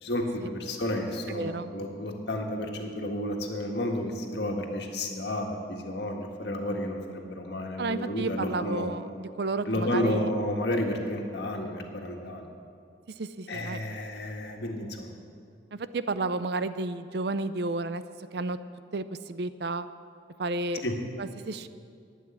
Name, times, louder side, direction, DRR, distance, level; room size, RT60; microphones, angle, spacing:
voice 1, 0.0-8.9 9.7-12.5 13.5-15.1 20.8-20.9, left 1 dB, 60° left, 2 dB, 1.7 m, -31 dB
voice 2, 1.3-1.7 7.8-10.3 13.2-13.8 15.7-18.0 18.3-18.6 18.9-19.9 20.4-20.8 21.2-21.7, right 3 dB, 60° right, 13 dB, 0.5 m, -32 dB
12.0 x 8.4 x 9.9 m, 2.3 s
head